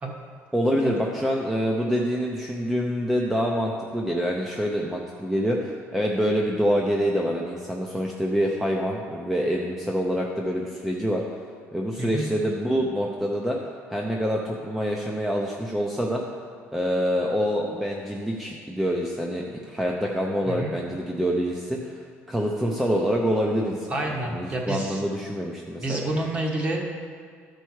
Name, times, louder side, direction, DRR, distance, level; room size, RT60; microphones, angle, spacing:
voice 1, 0.5-11.2 11.7-13.6 13.9-16.2 16.7-26.1, equal, 5° right, -1 dB, 0.6 m, -26 dB
voice 2, 23.9-25.0 25.8-27.0, right 1 dB, 25° right, 0 dB, 1.3 m, -28 dB
12.5 x 4.5 x 4.7 m, 2.1 s
cardioid pair, 145°, 5 cm